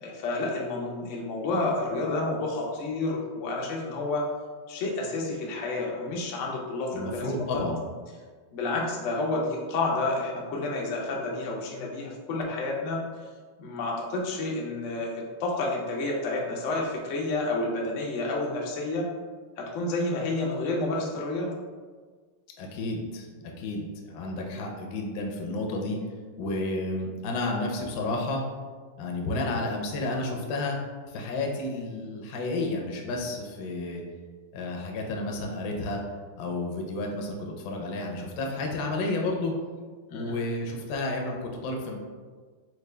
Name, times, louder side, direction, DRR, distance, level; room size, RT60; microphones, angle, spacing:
voice 1, 0.0-4.2 4.7-7.3 8.5-13.0 13.6-19.1 19.6-21.5 40.1-40.4, left 2 dB, 85° left, -2 dB, 0.6 m, -30 dB
voice 2, 6.9-7.8 22.6-26.0 26.4-28.4 29.0-30.8 31.1-34.0 34.5-36.0 36.4-39.5 40.1-41.9, left 2 dB, 70° left, 0 dB, 1.0 m, -31 dB
4.4 x 2.2 x 3.2 m, 1.5 s
omnidirectional pair, 2.2 m